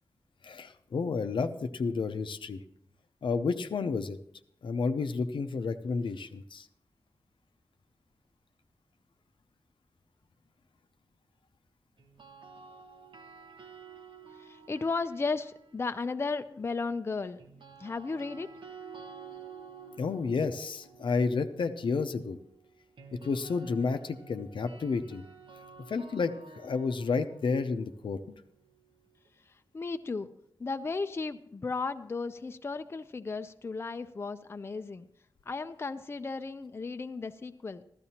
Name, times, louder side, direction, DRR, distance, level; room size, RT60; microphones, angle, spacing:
voice 1, 0.4-2.6 3.2-4.2 4.6-6.7 20.0-22.4 23.2-25.2 25.9-28.2, left 4 dB, 80° left, 9 dB, 0.6 m, -31 dB
sound 1, 12.0-16.2 17.4-29.3, right 5 dB, 85° right, 1.1 m, -51 dB
voice 2, 14.4-17.4 17.8-18.5 29.7-30.3 30.6-35.1 35.5-37.8, left 4 dB, 30° left, 9 dB, 0.4 m, -35 dB
14.5 x 12.5 x 2.9 m, 0.74 s
wide cardioid pair, 125°, 8 cm